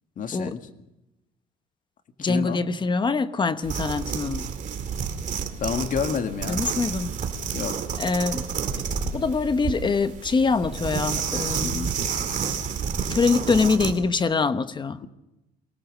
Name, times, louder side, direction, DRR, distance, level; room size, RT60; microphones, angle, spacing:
voice 1, 0.2-0.7 2.2-2.6 5.6-6.7 7.5-7.8, left 6 dB, 50° left, 7 dB, 2.0 m, -29 dB
voice 2, 2.2-4.5 6.5-7.1 8.0-8.4 9.1-11.9 13.1-15.0, left 4 dB, 25° left, 12 dB, 1.1 m, -24 dB
sound 1, 3.6-14.0, right 6 dB, 45° right, 2.4 m, -30 dB
24.0 x 18.0 x 6.5 m, 0.97 s
cardioid pair, 110°, 17 cm